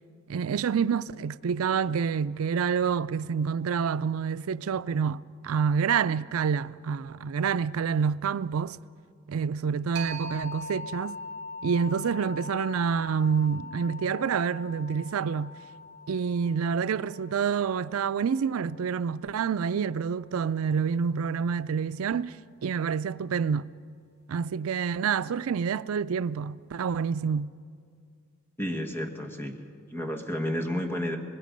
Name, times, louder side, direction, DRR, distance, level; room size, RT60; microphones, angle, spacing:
voice 1, 0.3-8.8 9.3-11.2 11.6-15.5 16.1-23.7 24.3-27.5, right 6 dB, 90° right, 0.4 m, -28 dB
sound 1, 10.0-19.3, left 2 dB, 50° right, 2.5 m, -42 dB
voice 2, 28.6-29.5 29.9-31.2, equal, 10° left, 1.5 m, -31 dB
25.0 x 20.5 x 5.3 m
head